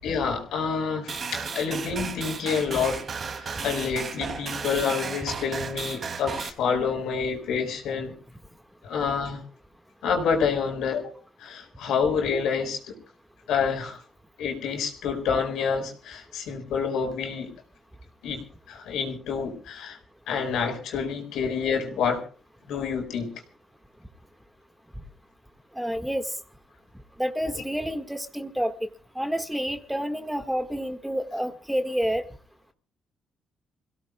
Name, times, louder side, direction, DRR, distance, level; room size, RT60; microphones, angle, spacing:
voice 1, 0.0-3.0 3.4-8.2 8.8-9.4 10.0-11.1 11.4-12.9 13.5-14.0 14.4-17.5 18.2-18.4 18.7-20.0 20.3-22.2 22.7-23.3, left 6 dB, 80° left, 4 dB, 4.9 m, -28 dB
sound 1, 1.1-6.5, right 5 dB, 50° right, 2.7 m, -34 dB
voice 2, 25.8-26.3 27.2-28.7 29.2-32.2, equal, 5° right, 7 dB, 1.8 m, -29 dB
28.5 x 17.0 x 2.3 m, 0.39 s
cardioid pair, 90°, 0 cm